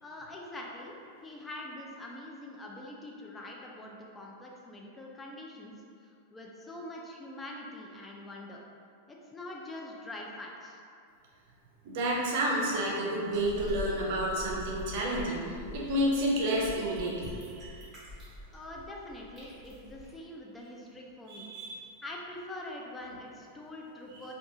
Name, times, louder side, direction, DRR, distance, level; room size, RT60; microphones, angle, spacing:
voice 1, 0.0-5.7 6.0-8.6 9.1-10.8 18.5-21.5 22.0-24.3, left 1 dB, 15° left, -2 dB, 0.3 m, -44 dB
voice 2, 11.8-17.9 21.3-21.9 24.1-24.2, right 1 dB, 65° right, -3 dB, 0.6 m, -30 dB
sound 1, 13.3-20.1, left 1 dB, 15° right, 1.1 m, -44 dB
2.4 x 2.3 x 2.7 m, 2.4 s
hypercardioid pair, 130°, 0 cm